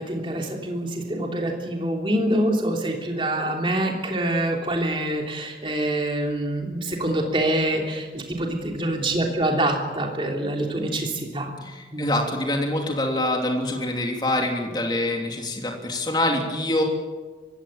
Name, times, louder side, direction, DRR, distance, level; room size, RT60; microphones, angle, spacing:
voice 1, 0.0-11.6 11.9-12.1, right 1 dB, 30° right, 1 dB, 3.3 m, -25 dB
voice 2, 11.6-16.8, left 1 dB, 25° left, 2 dB, 3.2 m, -25 dB
23.5 x 16.5 x 9.0 m, 1.3 s
head